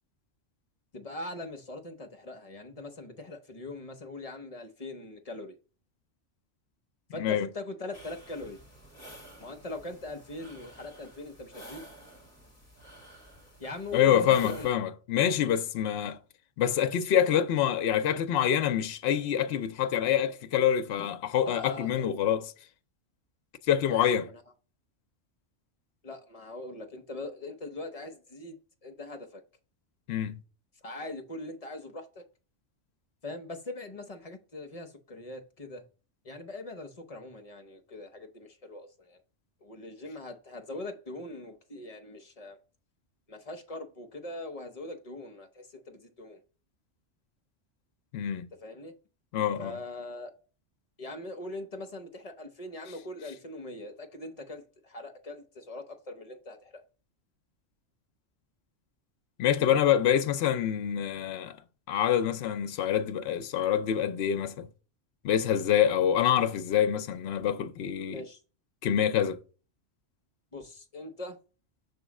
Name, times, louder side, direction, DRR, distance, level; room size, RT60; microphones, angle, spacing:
voice 1, 0.9-5.6 7.1-8.6 9.4-11.9 13.6-14.7 21.4-22.1 23.8-24.3 26.0-29.4 30.8-32.3 33.2-35.8 36.2-39.2 39.6-42.6 43.3-46.4 48.6-48.9 49.6-50.3 51.0-56.8 68.1-68.4 70.5-71.4, left 2 dB, 35° left, 0.8 m, -41 dB
sound 1, 7.9-14.7, right 1 dB, 15° right, 1.9 m, -51 dB
voice 2, 13.9-16.2 16.6-22.5 23.7-24.3 30.1-30.4 48.1-48.5 49.3-49.8 59.4-61.6 61.9-64.7 65.2-68.2 68.8-69.4, left 9 dB, 65° left, 0.8 m, -26 dB
6.4 x 3.1 x 4.7 m
omnidirectional pair, 1.2 m